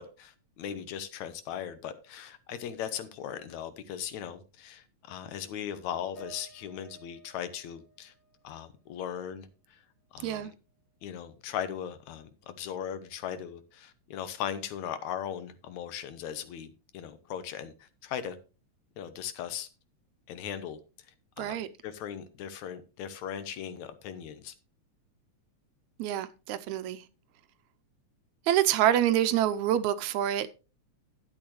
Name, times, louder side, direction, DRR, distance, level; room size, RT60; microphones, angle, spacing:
voice 1, 0.0-8.1 8.4-9.8 10.1-10.5 11.0-18.4 19.0-19.7 20.3-20.8 21.4-21.6 21.8-24.5, left 9 dB, 75° left, 2.2 m, -38 dB
sound 1, 6.2-9.6 10.0-11.0, right 2 dB, 40° left, 2.8 m, -55 dB
voice 2, 21.4-21.7 26.0-27.0 28.5-30.5, right 11 dB, 80° right, 1.8 m, -26 dB
11.5 x 8.7 x 3.0 m
omnidirectional pair, 3.5 m